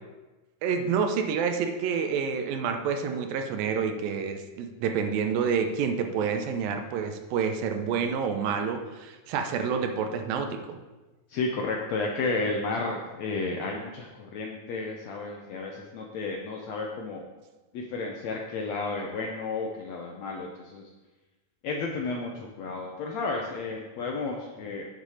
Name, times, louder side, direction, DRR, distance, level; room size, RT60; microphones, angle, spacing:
voice 1, 0.6-10.8, right 6 dB, 80° right, 6 dB, 2.6 m, -28 dB
voice 2, 11.3-17.2 17.7-20.9 21.6-24.9, left 3 dB, 75° left, 0 dB, 1.7 m, -32 dB
9.2 x 7.2 x 4.9 m, 1.1 s
omnidirectional pair, 4.1 m